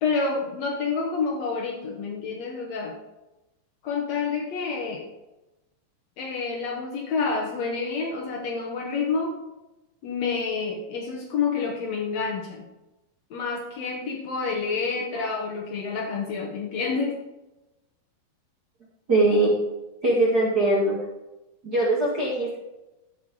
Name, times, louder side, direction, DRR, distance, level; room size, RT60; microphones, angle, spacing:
voice 1, 0.0-3.0 3.8-5.1 6.2-9.4 10.0-12.6 13.3-17.2, left 4 dB, 85° left, 0 dB, 1.5 m, -28 dB
voice 2, 19.1-19.5 20.0-20.9 21.6-22.6, right 2 dB, 35° right, -6 dB, 1.6 m, -21 dB
14.0 x 5.6 x 3.8 m, 0.99 s
omnidirectional pair, 4.8 m